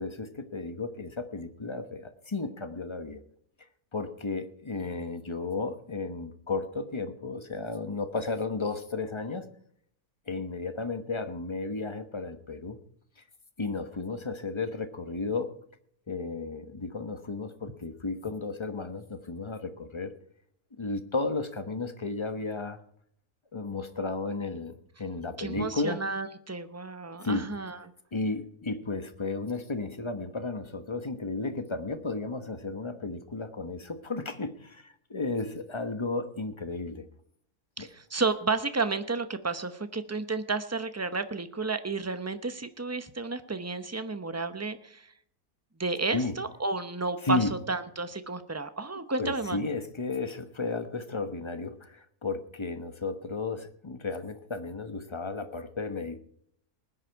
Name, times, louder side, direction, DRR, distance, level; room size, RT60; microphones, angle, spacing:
voice 1, 0.0-3.2 3.9-9.5 10.3-12.8 13.6-15.5 16.1-20.1 20.8-22.8 23.5-26.0 27.2-27.5 28.1-37.0 37.8-37.9 46.1-46.4 47.2-47.5 49.2-56.2, left 3 dB, 20° left, 9 dB, 1.0 m, -33 dB
voice 2, 25.4-27.8 37.8-45.1 45.8-49.6, right 3 dB, 15° right, 11 dB, 0.6 m, -32 dB
20.0 x 9.9 x 4.6 m, 0.67 s
omnidirectional pair, 1.6 m